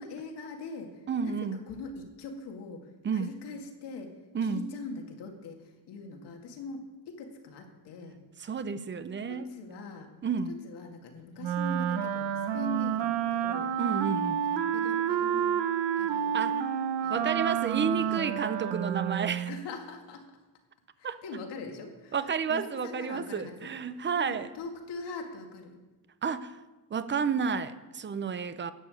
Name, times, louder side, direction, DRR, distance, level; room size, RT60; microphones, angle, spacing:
voice 1, 0.0-1.4 1.7-4.1 4.4-8.2 9.3-10.1 10.5-13.7 14.4-15.6 16.0-16.3 17.0-17.2 17.9-18.3 19.5-20.2 21.0-22.2 22.5-23.7 24.1-25.8, left 3 dB, 70° left, 2.3 m, -42 dB
voice 2, 1.1-1.6 3.0-3.3 4.3-4.7 8.4-9.5 10.2-10.6 13.8-14.4 16.3-16.7 17.1-19.5 21.0-21.2 22.1-24.5 26.2-26.5 26.9-28.7, right 6 dB, 25° right, 0.7 m, -31 dB
Wind instrument woodwind instrument, 11.4-19.6, right 9 dB, 75° right, 1.1 m, -29 dB
11.5 x 7.0 x 8.3 m
cardioid pair, 120°, 42 cm